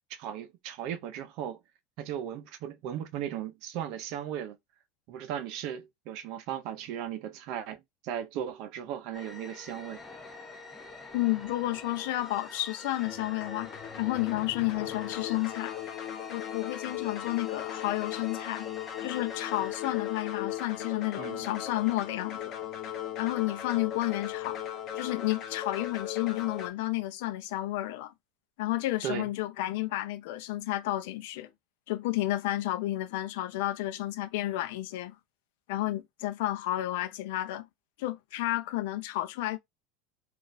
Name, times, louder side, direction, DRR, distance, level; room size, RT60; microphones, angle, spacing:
voice 1, 0.1-1.6 2.0-4.6 5.1-10.0 21.2-21.5 29.0-29.3, right 10 dB, 50° right, 0.5 m, -37 dB
sound 1, 9.1-21.6, left 3 dB, 10° left, 0.7 m, -47 dB
voice 2, 11.1-15.7 16.3-18.7 19.0-22.5 23.2-24.6 25.0-28.1 28.6-31.5 31.9-35.2 35.7-37.7 38.0-39.6, left 16 dB, 65° left, 0.5 m, -31 dB
sound 2, 13.0-26.7, left 11 dB, 35° left, 0.9 m, -37 dB
3.9 x 2.4 x 2.6 m
supercardioid pair, 165°, 0 cm